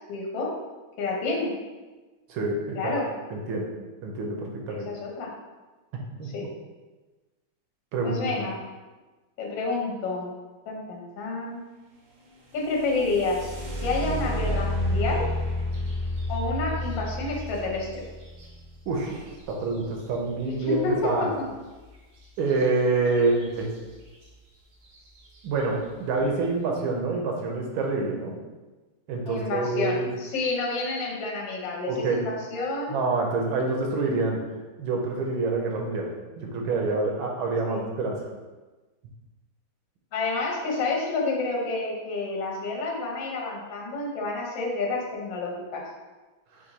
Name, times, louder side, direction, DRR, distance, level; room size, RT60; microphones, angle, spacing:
voice 1, 0.1-0.5 1.0-1.5 2.7-3.1 4.7-5.3 6.3-6.4 8.0-8.6 9.4-10.3 10.7-11.6 12.5-13.5 13.8-15.2 16.3-18.0 20.6-21.1 23.1-23.2 29.3-32.9 37.6-37.8 40.1-45.8, left 3 dB, 70° left, -2 dB, 1.5 m, -29 dB
voice 2, 2.3-2.9 3.3-3.7 4.0-4.9 6.2-6.5 7.9-8.2 18.9-21.3 22.4-23.7 25.4-28.4 29.1-30.1 31.9-32.3 32.9-34.4 34.8-38.3, right 3 dB, 75° right, 1 dB, 1.4 m, -27 dB
sound 1, 12.6-20.4 22.5-22.6 23.1-23.6 24.2-24.3 24.8-25.2, left 1 dB, 60° right, 0.8 m, -31 dB
4.5 x 2.6 x 3.9 m, 1.2 s
omnidirectional pair, 2.3 m